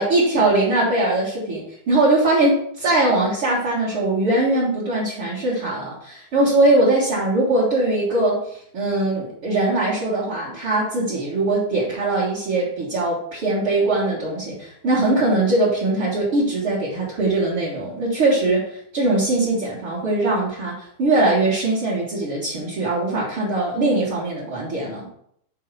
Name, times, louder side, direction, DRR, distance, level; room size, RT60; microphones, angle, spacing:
voice 1, 0.0-25.1, right 2 dB, 50° right, -8 dB, 1.7 m, -21 dB
6.6 x 3.8 x 5.5 m, 0.69 s
omnidirectional pair, 5.3 m